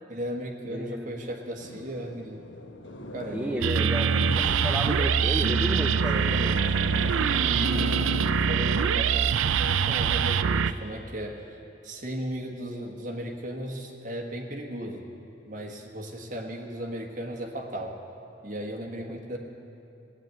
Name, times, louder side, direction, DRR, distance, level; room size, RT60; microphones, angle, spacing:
voice 1, 0.1-2.4 3.1-3.9 6.0-9.3 9.6-11.4 11.8-15.0 15.5-18.0 18.4-19.4, equal, 40° right, 2 dB, 1.5 m, -36 dB
voice 2, 0.7-1.3 3.3-6.4 19.1-19.2, equal, 5° right, 1 dB, 0.5 m, -33 dB
sound 1, 1.6-10.4, left 2 dB, 70° left, 1.1 m, -38 dB
sound 2, 3.6-10.7, right 6 dB, 90° right, 0.5 m, -24 dB
17.0 x 8.9 x 9.5 m, 2.7 s
head